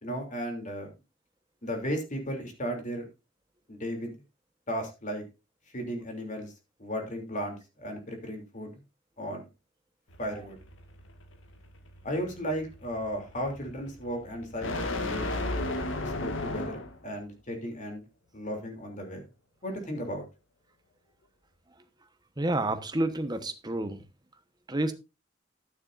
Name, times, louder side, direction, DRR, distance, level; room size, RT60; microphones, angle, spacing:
voice 1, 0.0-0.9 1.6-3.1 3.7-4.1 4.7-5.2 5.7-6.5 6.8-8.7 9.2-9.4 10.2-10.6 12.0-15.3 16.0-18.0 18.3-19.2 19.6-20.2, equal, 40° left, 3.1 m, -35 dB
sound 1, 10.1-17.1, left 2 dB, 75° left, 1.9 m, -35 dB
voice 2, 22.4-24.0 24.7-24.9, right 1 dB, 20° right, 1.2 m, -29 dB
12.0 x 9.7 x 2.6 m
head